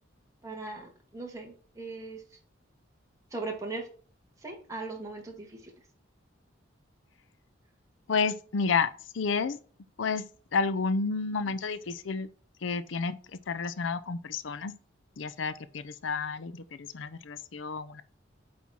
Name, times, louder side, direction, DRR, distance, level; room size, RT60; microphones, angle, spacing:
voice 1, 0.4-2.2 3.3-3.9 4.4-5.7, right 3 dB, 15° right, 1.9 m, -39 dB
voice 2, 8.1-8.9 9.1-9.6 10.0-10.2 10.5-12.3 12.6-13.2 13.5-14.7 15.2-18.0, left 5 dB, 75° left, 0.5 m, -30 dB
8.3 x 4.3 x 4.3 m
head